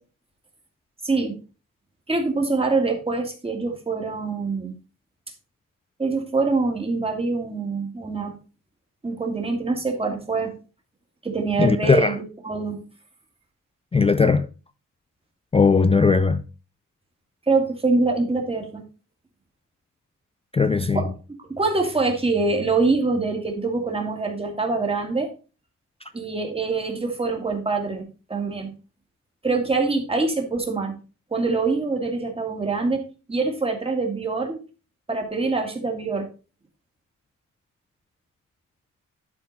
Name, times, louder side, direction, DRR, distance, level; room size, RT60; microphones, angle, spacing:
voice 1, 1.0-1.4 2.1-4.8 6.0-8.3 9.0-10.5 11.2-12.8 17.5-18.8 20.9-21.1 21.4-25.3 26.1-28.7 29.4-31.0 31.3-33.0 33.3-34.6 35.1-36.3, right 3 dB, 20° right, 2.1 m, -24 dB
voice 2, 11.6-12.2 13.9-14.5 15.5-16.4 20.5-21.0, left 4 dB, 20° left, 0.3 m, -18 dB
11.5 x 4.4 x 4.1 m
wide cardioid pair, 130°, 32 cm